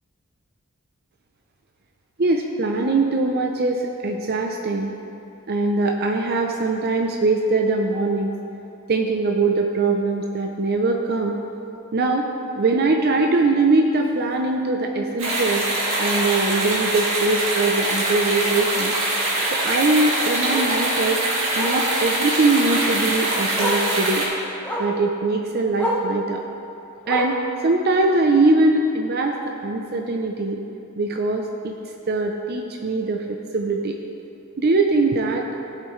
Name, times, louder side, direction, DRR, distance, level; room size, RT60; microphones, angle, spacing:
voice 1, 2.2-4.9 5.5-8.3 8.9-11.4 11.9-12.3 12.6-15.7 16.0-18.9 19.5-21.2 21.6-24.3 24.8-26.4 27.1-30.6 31.0-31.8 32.1-34.0 34.6-35.4, right 3 dB, 50° right, 2 dB, 0.6 m, -22 dB
Bark, 14.0-14.2 14.6-14.7 15.1-15.2 15.5-15.6 17.0-17.1 19.6-19.7 20.5-20.8 21.5-21.9 23.0-23.1 23.6-23.9 24.6-25.0 25.8-26.1 27.0-27.5 28.5-28.6, equal, 10° left, 1.2 m, -27 dB
sound 1, 15.2-24.2, right 1 dB, 70° right, 2.2 m, -23 dB
15.5 x 7.4 x 3.2 m, 2.8 s
head